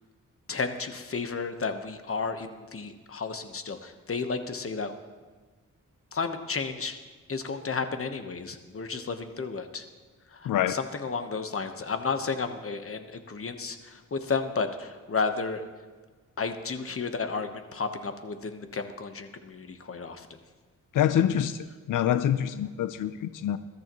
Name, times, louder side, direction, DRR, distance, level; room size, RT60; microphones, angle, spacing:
voice 1, 0.5-4.9 6.1-7.0 7.3-9.8 10.3-15.6 16.4-20.4, left 4 dB, 45° left, 8 dB, 1.2 m, -32 dB
voice 2, 10.5-10.8 20.9-23.6, left 10 dB, 75° left, 12 dB, 0.6 m, -26 dB
21.5 x 13.0 x 3.1 m, 1.4 s
cardioid pair, 90°, 32 cm